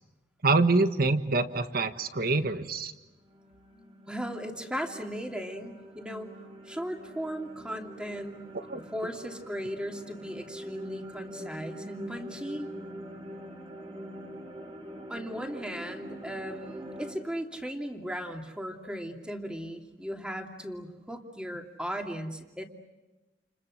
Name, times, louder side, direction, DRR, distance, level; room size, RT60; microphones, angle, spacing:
voice 1, 0.4-2.9 8.7-8.8, right 3 dB, 55° right, 10 dB, 1.4 m, -25 dB
sound 1, 2.7-17.1, equal, 25° right, 3.8 m, -44 dB
voice 2, 4.1-6.3 6.6-8.4 8.9-12.7 15.1-22.6, equal, 5° right, 3 dB, 2.7 m, -37 dB
30.0 x 29.5 x 6.5 m, 1.1 s
head